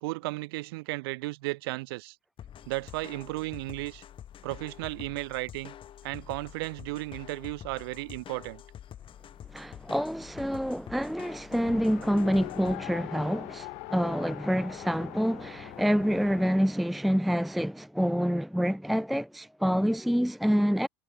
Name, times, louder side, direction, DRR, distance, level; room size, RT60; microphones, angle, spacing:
voice 1, 0.0-2.2 2.7-4.0 4.4-5.7 6.0-8.6, right 22 dB, 85° right, 0.6 m, -34 dB
sound 1, 2.4-12.8, left 10 dB, 45° left, 2.0 m, -47 dB
voice 2, 9.5-20.9, equal, ahead, 0.5 m, -27 dB
Race car auto racing, 11.5-16.7, left 34 dB, 70° left, 0.8 m, -42 dB
supercardioid pair, 95°, 12 cm